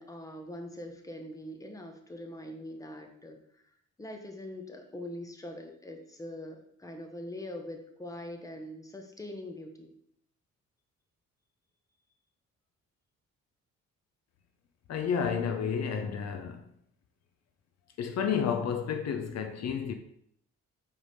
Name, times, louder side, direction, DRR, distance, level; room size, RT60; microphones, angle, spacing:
voice 1, 0.0-9.9, left 1 dB, 10° left, 1.0 m, -43 dB
voice 2, 14.9-16.6 18.0-19.9, left 7 dB, 60° left, 0.6 m, -31 dB
4.7 x 3.6 x 5.5 m
cardioid pair, 90°, 30 cm